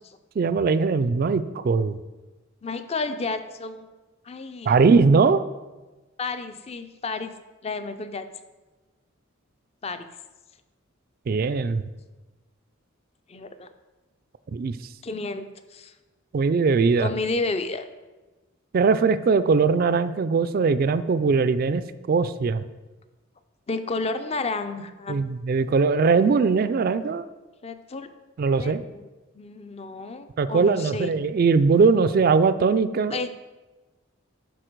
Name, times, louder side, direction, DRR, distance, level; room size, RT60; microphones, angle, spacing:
voice 1, 0.4-2.0 4.7-5.4 11.3-11.8 14.5-14.8 16.3-17.1 18.7-22.6 25.1-27.3 28.4-28.8 30.4-33.2, right 4 dB, 45° right, 13 dB, 0.3 m, -20 dB
voice 2, 2.6-3.9 4.2-4.7 6.2-7.3 7.6-8.3 9.8-10.1 13.3-13.7 15.0-15.9 17.0-17.9 23.7-25.2 27.6-28.1 28.5-29.1 29.3-31.1 33.1-33.3, left 3 dB, 30° left, 10 dB, 0.5 m, -31 dB
11.5 x 4.1 x 4.6 m, 1.2 s
head